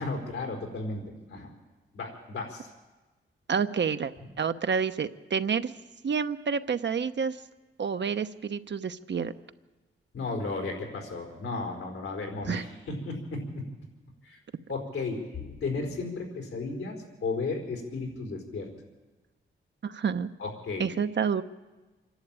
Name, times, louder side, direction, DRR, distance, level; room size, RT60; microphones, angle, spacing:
voice 1, 0.0-1.5 1.9-2.7 10.1-13.7 14.2-14.4 14.7-18.7 20.4-20.9, left 3 dB, 90° left, 2 dB, 4.6 m, -34 dB
voice 2, 3.5-5.7 6.0-7.4 7.8-9.3 12.5-12.6 19.8-20.3 20.8-21.4, right 6 dB, 60° right, 10 dB, 0.9 m, -29 dB
26.0 x 11.5 x 9.0 m, 1.2 s
cardioid pair, 70°, 21 cm